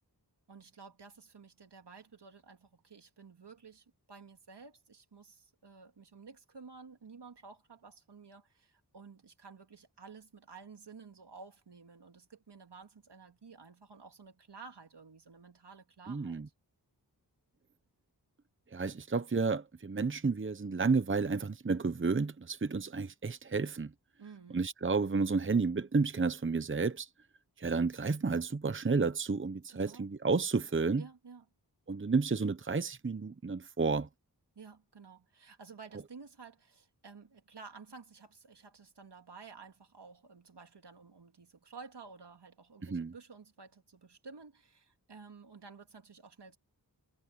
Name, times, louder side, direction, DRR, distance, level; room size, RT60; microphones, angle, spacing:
voice 1, 0.5-16.4 24.2-24.6 29.7-30.1 31.0-31.4 34.5-46.6, right 5 dB, 80° right, 2.8 m, -53 dB
voice 2, 16.1-16.5 18.7-23.9 24.5-27.1 27.6-31.0 31.9-34.1 42.8-43.1, right 4 dB, 30° right, 0.9 m, -31 dB
wide cardioid pair, 65°, 40 cm